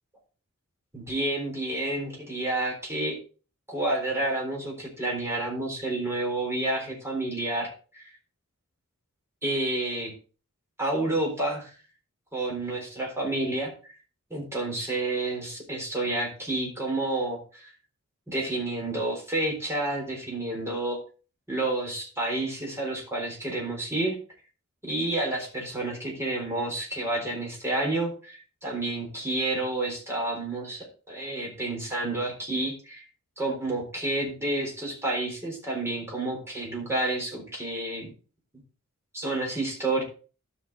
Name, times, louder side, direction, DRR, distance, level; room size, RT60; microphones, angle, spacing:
voice 1, 0.9-3.2 3.7-8.0 9.4-10.1 10.8-11.7 12.3-13.7 14.3-17.7 18.3-21.0 21.5-24.2 24.8-33.0 33.4-38.1 39.1-40.0, right 2 dB, 10° right, -1 dB, 3.8 m, -30 dB
12.5 x 6.1 x 3.8 m, 0.37 s
head